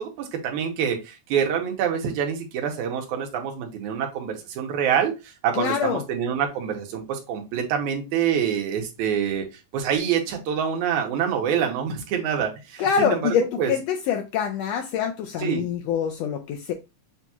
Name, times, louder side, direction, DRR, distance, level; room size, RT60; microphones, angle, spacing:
voice 1, 0.0-9.4 9.7-13.2 13.6-13.7 15.4-15.6, right 8 dB, 85° right, 3 dB, 2.3 m, -26 dB
voice 2, 5.5-6.0 12.8-16.7, left 8 dB, 85° left, 4 dB, 1.5 m, -25 dB
6.8 x 2.3 x 2.8 m, 0.27 s
omnidirectional pair, 3.4 m